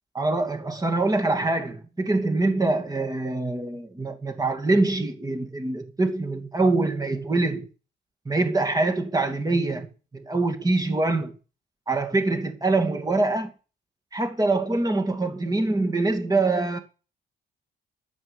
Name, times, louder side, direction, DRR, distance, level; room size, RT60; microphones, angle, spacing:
voice 1, 0.1-7.7 8.3-11.4 11.9-13.5 14.1-16.8, right 2 dB, 20° right, 2.5 m, -24 dB
11.0 x 8.2 x 7.3 m
cardioid pair, 90°, 20 cm